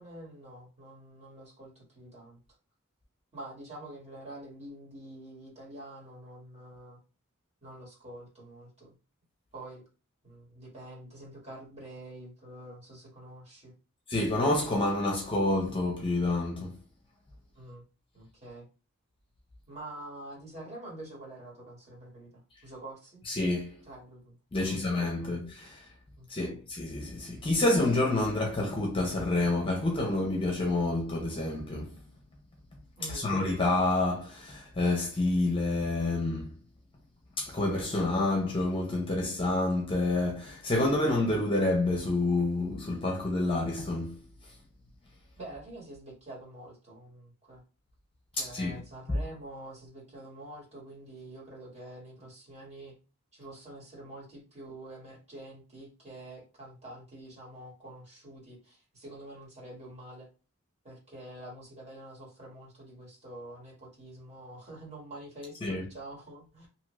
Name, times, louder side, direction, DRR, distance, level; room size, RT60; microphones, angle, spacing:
voice 1, 0.0-2.4 3.3-7.0 7.6-8.9 9.5-9.9 10.2-13.7 17.5-17.8 18.1-18.7 19.7-23.2 23.9-24.9 25.2-25.4 26.2-26.6 33.0-33.3 45.4-47.6 48.3-52.9 53.3-60.3 60.8-66.7, right 1 dB, 30° right, 1.4 m, -46 dB
voice 2, 14.1-16.7 23.3-23.8 24.5-25.9 26.3-32.0 33.0-36.6 37.4-44.2 48.4-48.8 65.6-65.9, left 2 dB, 25° left, 0.6 m, -28 dB
2.8 x 2.4 x 3.0 m
head